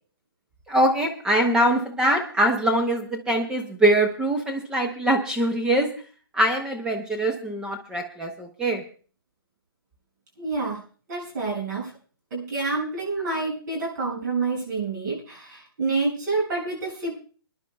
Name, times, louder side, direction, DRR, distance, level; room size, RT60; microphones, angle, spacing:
voice 1, 0.7-5.9 6.3-8.8, right 1 dB, 5° right, 2 dB, 0.7 m, -23 dB
voice 2, 10.4-10.8 11.1-11.9 12.3-17.2, right 3 dB, 45° right, -3 dB, 7.1 m, -28 dB
28.0 x 10.5 x 2.3 m, 0.40 s
hypercardioid pair, 155°, 13 cm